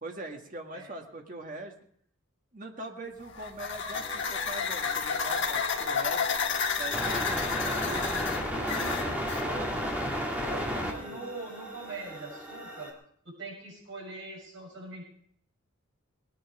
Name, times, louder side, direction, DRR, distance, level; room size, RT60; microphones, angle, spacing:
voice 1, 0.0-1.7 2.5-6.2 6.8-9.9 10.4-11.2, right 2 dB, 40° right, 3 dB, 1.8 m, -42 dB
sound 1, 3.2-9.5, left 6 dB, 60° left, 1.4 m, -31 dB
sound 2, 3.9-12.9, equal, 5° right, 2.2 m, -34 dB
voice 2, 10.8-12.9 13.2-15.0, right 3 dB, 60° right, -2 dB, 7.6 m, -42 dB
19.5 x 10.5 x 4.9 m, 0.64 s
head